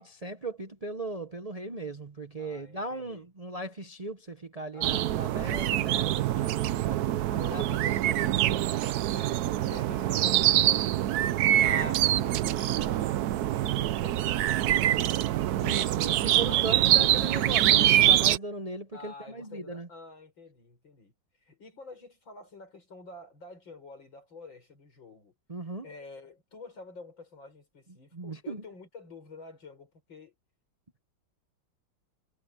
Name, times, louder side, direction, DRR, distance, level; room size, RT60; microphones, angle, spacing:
voice 1, 0.0-7.0 7.5-8.7 11.5-12.1 15.6-19.9 25.5-25.9 28.1-28.6, right 2 dB, 30° right, 0.7 m, -38 dB
voice 2, 2.4-3.2 4.7-5.8 6.2-6.7 7.2-8.4 9.1-11.1 11.6-13.2 13.5-15.4 16.5-17.0 18.9-21.1 21.4-25.3 25.8-30.3, left 3 dB, 90° left, 6.5 m, -48 dB
sound 1, 4.8-18.4, right 12 dB, 65° right, 1.0 m, -25 dB
omnidirectional pair, 2.0 m